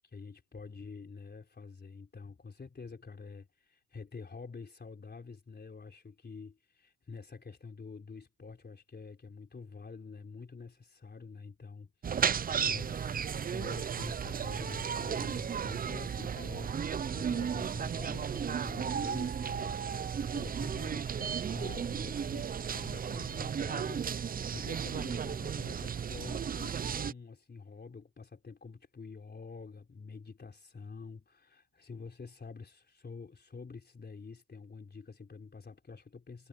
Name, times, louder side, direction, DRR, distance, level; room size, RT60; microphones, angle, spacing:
voice 1, 0.1-36.5, left 4 dB, 25° left, 4.0 m, -48 dB
sound 1, 12.0-27.1, right 7 dB, 20° right, 0.6 m, -34 dB
supercardioid pair, 80°, 39 cm